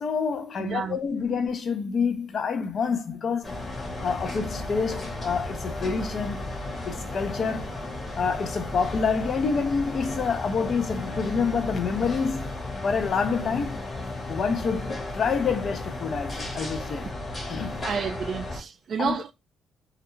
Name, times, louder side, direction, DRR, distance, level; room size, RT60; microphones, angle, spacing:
voice 1, 0.0-3.6 4.0-6.5 6.9-7.8 8.1-12.6 12.8-13.8 14.3-17.1 17.5-17.9 19.0-19.1, left 5 dB, 55° left, 0.5 m, -27 dB
voice 2, 0.6-1.0 17.0-17.1 17.8-19.3, right 6 dB, 55° right, 0.3 m, -30 dB
sound 1, 3.4-18.6, left 2 dB, 35° left, 1.1 m, -34 dB
2.3 x 2.1 x 3.0 m
cardioid pair, 90°, 0 cm